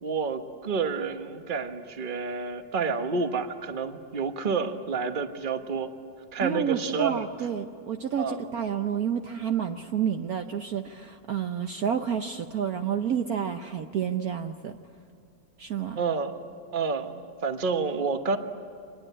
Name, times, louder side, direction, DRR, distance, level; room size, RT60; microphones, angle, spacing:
voice 1, 0.0-5.9 6.3-7.2 8.2-8.4 16.0-16.4 16.7-18.4, right 5 dB, 30° right, 7 dB, 1.3 m, -29 dB
voice 2, 6.4-14.8 15.6-16.0, right 8 dB, 60° right, 6 dB, 1.2 m, -29 dB
26.0 x 20.5 x 9.9 m, 2.6 s
omnidirectional pair, 2.0 m